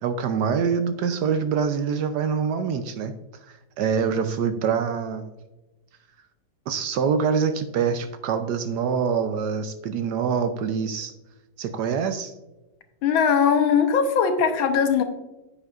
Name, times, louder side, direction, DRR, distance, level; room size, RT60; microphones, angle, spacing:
voice 1, 0.0-3.1 3.4-5.3 6.7-11.1 11.6-12.3, right 6 dB, 70° right, 9 dB, 1.0 m, -25 dB
voice 2, 13.0-15.0, left 6 dB, 90° left, 7 dB, 1.7 m, -20 dB
9.6 x 8.7 x 2.4 m, 1.0 s
omnidirectional pair, 2.1 m